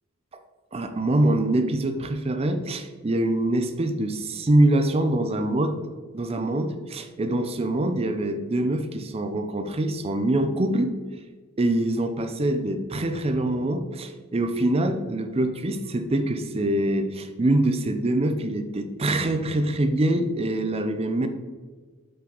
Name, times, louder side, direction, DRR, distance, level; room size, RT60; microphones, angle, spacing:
voice 1, 0.7-5.8 6.1-10.9 11.6-21.3, right 1 dB, 30° right, 8 dB, 0.5 m, -24 dB
5.6 x 5.1 x 3.9 m, 1.4 s
head